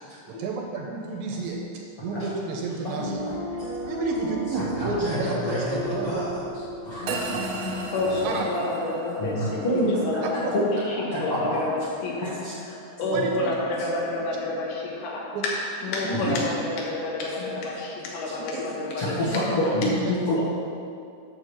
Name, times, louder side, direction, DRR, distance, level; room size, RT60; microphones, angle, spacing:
voice 1, 0.3-1.6 2.0-3.3 3.9-6.2 7.1-7.2 8.2-8.4 10.4-10.6 13.1-13.5 15.3-15.4 16.0-16.4 18.5-18.6, right 4 dB, 80° right, 1 dB, 2.7 m, -30 dB
voice 2, 2.8-3.3 4.5-6.3 6.8-7.7 8.5-8.6 9.2-9.4 9.6-10.2 10.5-10.7 11.1-11.6 12.2-12.5 16.1-16.2 17.4-17.5 19.0-20.4, left 1 dB, 70° left, -9 dB, 1.3 m, -27 dB
sound 1, 3.0-8.3, right 1 dB, 55° left, 2.1 m, -34 dB
sound 2, 7.1-17.4, right 2 dB, 65° right, 1.6 m, -40 dB
voice 3, 7.9-19.9 20.4-20.5, left 2 dB, 85° left, -3 dB, 4.2 m, -30 dB
9.1 x 7.0 x 6.2 m, 2.4 s
omnidirectional pair, 5.5 m